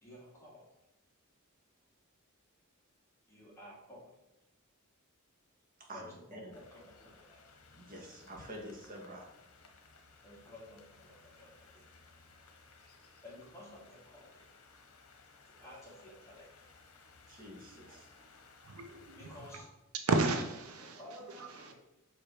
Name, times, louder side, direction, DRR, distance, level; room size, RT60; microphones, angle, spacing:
voice 1, 0.0-0.7 3.3-4.1 5.9-7.4 10.2-11.8 13.2-14.4 15.4-16.7 19.2-19.6 21.0-21.7, left 1 dB, 15° left, 2.3 m, -53 dB
voice 2, 5.8-6.5 7.7-9.3 11.7-11.8 17.3-18.1, right 1 dB, 40° right, 1.7 m, -48 dB
sound 1, 6.5-19.6, left 4 dB, 70° left, 1.0 m, -60 dB
voice 3, 17.7-18.0 18.6-19.7 20.0-21.7, right 3 dB, 75° right, 0.8 m, -35 dB
6.2 x 5.1 x 4.4 m
head